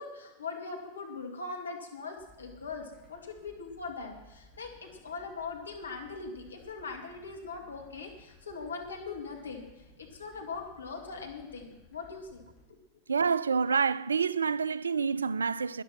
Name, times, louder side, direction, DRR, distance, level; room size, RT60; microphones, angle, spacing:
voice 1, 0.0-12.4, left 4 dB, 80° left, 2.3 m, -41 dB
sound 1, 2.2-12.6, left 2 dB, 20° left, 4.2 m, -58 dB
voice 2, 13.1-15.8, right 5 dB, 80° right, 0.4 m, -28 dB
13.5 x 10.0 x 6.0 m
figure-of-eight pair, 95°, 0 cm